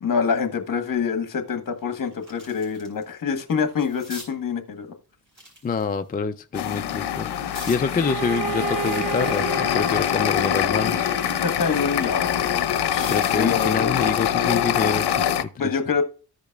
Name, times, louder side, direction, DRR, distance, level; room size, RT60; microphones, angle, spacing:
voice 1, 0.0-4.9 11.4-12.6 12.8-13.9 15.6-16.0, left 6 dB, 55° left, 1.3 m, -26 dB
sound 1, 1.0-1.1 1.6-3.0 3.4-4.3 5.3-6.1 6.7-7.8 8.4-10.6 11.0-13.5 14.8-15.1, equal, 30° right, 4.1 m, -45 dB
voice 2, 5.6-7.3 7.7-11.1 13.1-15.5, left 5 dB, 25° left, 0.4 m, -26 dB
sound 2, 6.5-15.4, left 10 dB, 85° left, 0.7 m, -24 dB
Bowed string instrument, 7.9-12.7, right 9 dB, 60° right, 0.7 m, -33 dB
14.5 x 5.1 x 2.3 m
cardioid pair, 95°, 39 cm